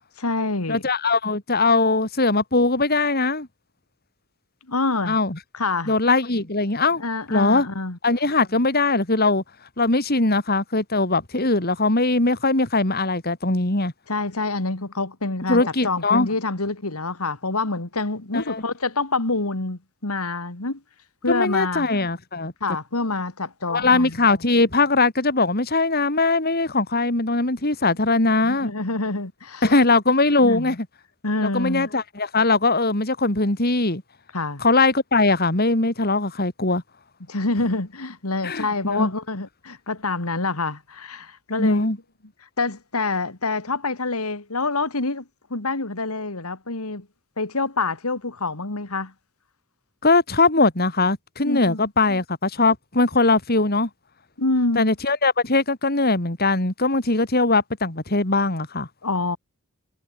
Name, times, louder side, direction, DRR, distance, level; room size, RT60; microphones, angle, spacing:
voice 1, 0.2-0.8 4.7-5.2 5.5-5.9 7.0-8.0 14.1-20.8 21.2-21.9 22.6-24.1 28.4-29.8 30.4-30.8 31.2-31.9 34.3-34.6 37.3-41.9 42.6-47.1 47.4-49.1 51.4-51.9 54.4-54.9 59.0-59.4, left 3 dB, 90° left, 2.5 m, -26 dB
voice 2, 0.7-3.5 5.0-5.4 5.9-7.0 7.3-7.7 8.0-9.4 9.8-13.9 15.5-16.3 18.3-18.6 21.3-22.5 23.7-28.7 29.6-30.9 31.4-34.0 34.6-36.8 38.4-39.1 41.6-42.0 50.0-53.9 54.7-58.9, left 3 dB, 45° left, 3.3 m, -20 dB
head